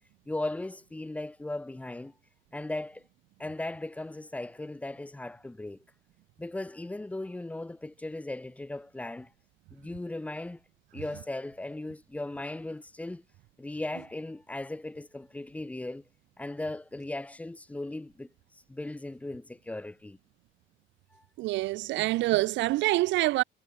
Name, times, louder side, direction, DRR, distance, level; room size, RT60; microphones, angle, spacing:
voice 1, 0.3-2.1 2.5-3.0 3.4-5.8 6.4-9.3 9.7-10.6 10.9-13.2 13.6-16.0 16.4-18.3 18.7-20.2 21.1-21.2 21.5-21.6, left 2 dB, 5° left, 1.7 m, -37 dB
voice 2, 21.4-23.4, right 18 dB, 60° right, 0.9 m, -26 dB
cardioid pair, 175°, 21 cm